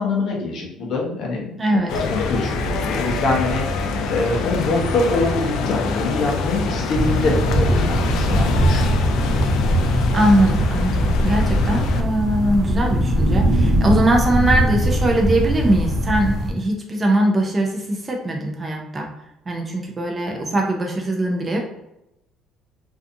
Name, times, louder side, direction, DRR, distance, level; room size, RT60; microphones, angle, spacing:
voice 1, 0.0-9.0, left 3 dB, 45° left, -2 dB, 0.7 m, -24 dB
voice 2, 1.6-2.0 10.1-19.1 19.5-21.6, right 1 dB, 15° right, 0 dB, 0.4 m, -21 dB
sound 1, 1.9-12.0, left 3 dB, 70° left, 0.3 m, -25 dB
sound 2, 6.9-16.5, equal, 40° right, 0.8 m, -20 dB
2.5 x 2.3 x 2.6 m, 0.87 s
cardioid pair, 175°, 0 cm